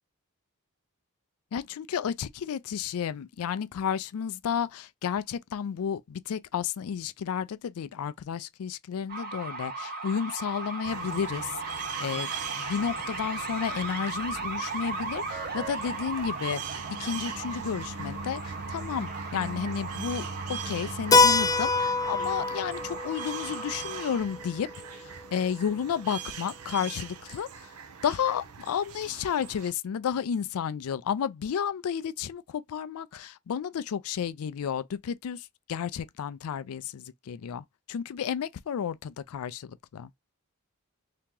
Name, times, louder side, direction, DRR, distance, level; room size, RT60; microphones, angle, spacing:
voice 1, 1.5-12.3 12.6-24.7 25.0-27.5 28.0-40.1, left 7 dB, 70° left, 0.4 m, -32 dB
sound 1, 9.1-24.2, right 3 dB, 45° right, 1.1 m, -37 dB
sound 2, 10.8-29.7, right 5 dB, 75° right, 0.6 m, -41 dB
Keyboard (musical), 21.1-25.6, left 4 dB, 15° left, 0.5 m, -26 dB
2.9 x 2.8 x 3.6 m
head